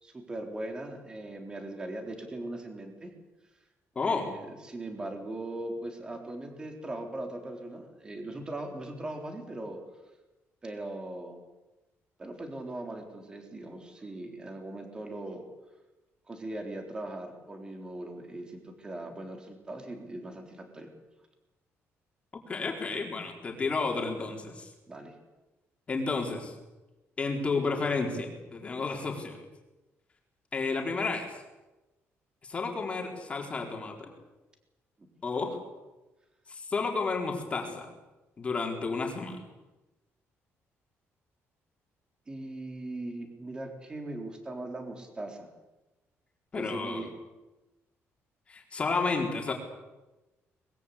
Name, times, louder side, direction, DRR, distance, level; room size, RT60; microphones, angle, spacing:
voice 1, 0.0-3.1 4.0-9.8 10.6-11.4 12.2-15.4 16.3-20.9 24.9-25.2 35.0-35.1 42.3-45.5 46.6-47.1, right 2 dB, 15° right, 4 dB, 3.7 m, -39 dB
voice 2, 4.0-4.3 22.3-24.7 25.9-26.5 27.2-29.4 30.5-31.3 32.4-34.1 35.2-35.6 36.5-37.9 38.4-39.4 46.5-47.0 48.5-49.5, left 4 dB, 25° left, 1 dB, 4.2 m, -31 dB
23.5 x 21.5 x 8.4 m, 1.1 s
cardioid pair, 170°, 5 cm